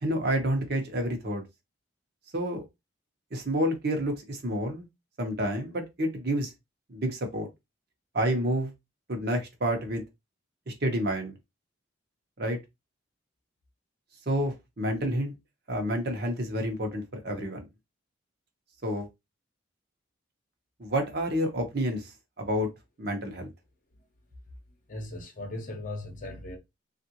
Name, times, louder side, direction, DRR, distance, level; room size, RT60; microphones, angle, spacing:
voice 1, 0.0-1.4 2.3-2.6 3.3-4.9 5.2-6.5 6.9-7.5 8.1-8.7 9.1-10.0 10.7-11.3 12.4-12.6 14.3-15.3 15.7-17.6 18.8-19.1 20.8-22.1 22.4-22.7 23.0-23.5, equal, 50° right, 0.9 m, -29 dB
voice 2, 24.9-26.6, left 2 dB, 40° left, 0.8 m, -38 dB
3.5 x 2.5 x 2.8 m
head